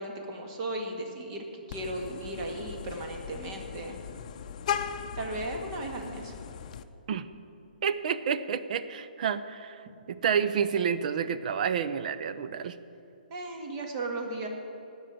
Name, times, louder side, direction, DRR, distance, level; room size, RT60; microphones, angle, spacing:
voice 1, 0.0-4.0 5.1-6.3 13.3-14.5, right 2 dB, 35° right, 2 dB, 2.0 m, -36 dB
Vehicle horn car horn honking, 1.7-6.8, left 8 dB, 50° left, 0.6 m, -38 dB
voice 2, 7.8-12.8, right 7 dB, 55° right, 12 dB, 0.6 m, -29 dB
16.5 x 5.5 x 9.0 m, 2.7 s
hypercardioid pair, 140°, 5 cm